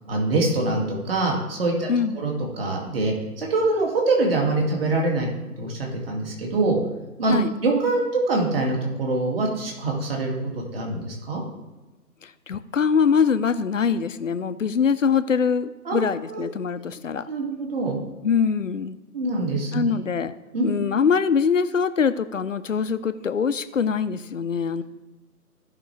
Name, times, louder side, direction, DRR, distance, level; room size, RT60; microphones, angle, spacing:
voice 1, 0.1-1.9 2.1-2.3 2.6-5.3 5.6-6.8 7.2-7.3 7.6-11.4 15.9-16.4 17.3-18.0 19.1-19.8 20.5-20.7, right 2 dB, 40° right, -1 dB, 2.4 m, -24 dB
voice 2, 1.9-2.3 7.3-7.5 12.2-17.3 18.2-19.0 19.7-20.3 20.6-24.8, left 6 dB, 55° left, 12 dB, 0.7 m, -23 dB
16.0 x 5.9 x 3.3 m, 1.1 s
figure-of-eight pair, 155°, 46 cm